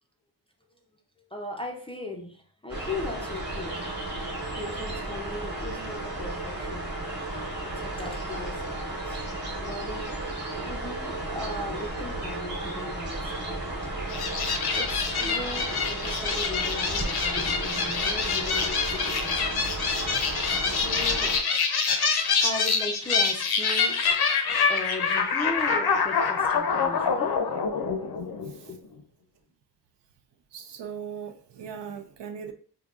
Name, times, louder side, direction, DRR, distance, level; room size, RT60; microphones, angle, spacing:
voice 1, 1.3-3.9 4.6-6.9 7.6-9.2 9.6-10.2 10.6-13.9 14.7-19.4 20.4-21.4 22.4-24.0 24.7-27.7 27.9-28.0 28.7-28.8, left 2 dB, 15° left, 0.3 m, -38 dB
sound 1, 2.7-21.4, right 2 dB, 25° right, 1.1 m, -34 dB
sound 2, 14.1-28.8, left 5 dB, 65° left, 0.6 m, -26 dB
voice 2, 30.5-32.5, right 7 dB, 75° right, 0.6 m, -39 dB
5.1 x 2.7 x 2.3 m
wide cardioid pair, 170°, 42 cm